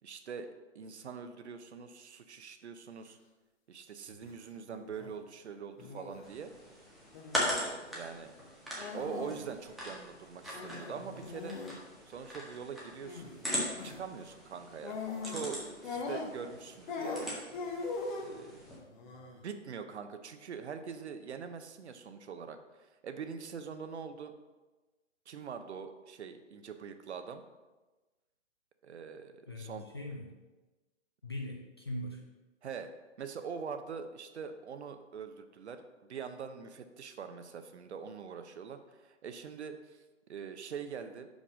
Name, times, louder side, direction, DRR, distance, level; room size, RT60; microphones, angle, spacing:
voice 1, 0.0-0.5 0.7-3.2 3.7-6.5 7.3-8.3 8.9-11.6 12.1-13.3 13.8-15.0 15.2-17.4 18.2-18.6 19.4-24.3 25.3-27.4 28.8-29.8 32.6-40.0 40.3-41.3, right 6 dB, 65° right, 8 dB, 0.8 m, -43 dB
sound 1, 4.1-4.3 4.7-5.1 5.8-6.2 7.1-7.5 8.8-9.5 9.7-9.8 10.5-11.8 13.0-13.4 13.7-14.0 14.8-15.5 15.8-16.6 16.9-18.4 18.9-19.4, left 4 dB, 40° left, 1.1 m, -40 dB
sound 2, 6.2-18.8, equal, ahead, 0.7 m, -41 dB
voice 2, 18.7-19.2 29.5-30.3 31.2-32.2, left 1 dB, 25° left, 0 dB, 0.3 m, -41 dB
5.4 x 5.2 x 5.0 m, 1.2 s
hypercardioid pair, 135°, 37 cm